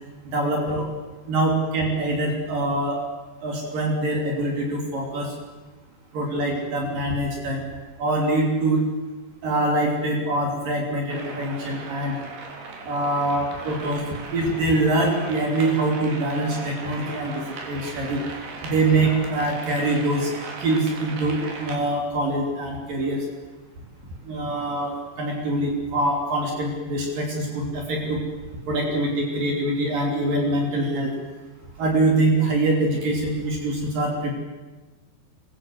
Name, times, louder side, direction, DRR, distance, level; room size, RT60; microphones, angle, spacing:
voice 1, 0.3-0.9 1.3-3.0 3.4-5.3 6.1-7.6 8.0-8.8 9.4-12.2 12.8-14.0 14.3-18.2 18.6-20.3 20.6-23.2 24.3-28.2 28.7-31.1 31.8-34.3, right 2 dB, 60° right, 0 dB, 4.8 m, -24 dB
sound 1, 11.1-21.7, right 3 dB, 75° right, 5.2 m, -38 dB
24.0 x 21.5 x 8.0 m, 1.2 s
omnidirectional pair, 4.6 m